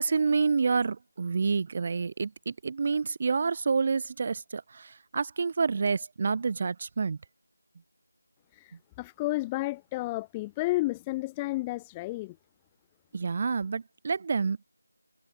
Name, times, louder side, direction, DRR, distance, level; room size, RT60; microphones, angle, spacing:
voice 1, 0.0-7.2 13.1-14.7, right 5 dB, 30° right, 1.5 m, -28 dB
voice 2, 8.5-12.4, left 20 dB, 10° left, 1.0 m, -32 dB
figure-of-eight pair, 170°, 0 cm